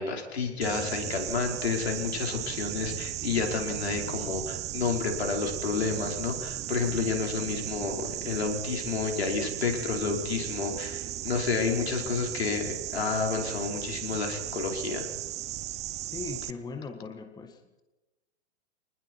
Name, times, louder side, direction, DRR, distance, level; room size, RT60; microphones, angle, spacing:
voice 1, 0.0-15.1, left 5 dB, 70° left, 2 dB, 5.2 m, -30 dB
sound 1, 0.6-16.5, right 14 dB, 20° right, 0.7 m, -36 dB
voice 2, 16.1-17.8, left 4 dB, 10° left, 7 dB, 1.8 m, -39 dB
28.5 x 20.0 x 4.8 m, 1.1 s
figure-of-eight pair, 110°, 33 cm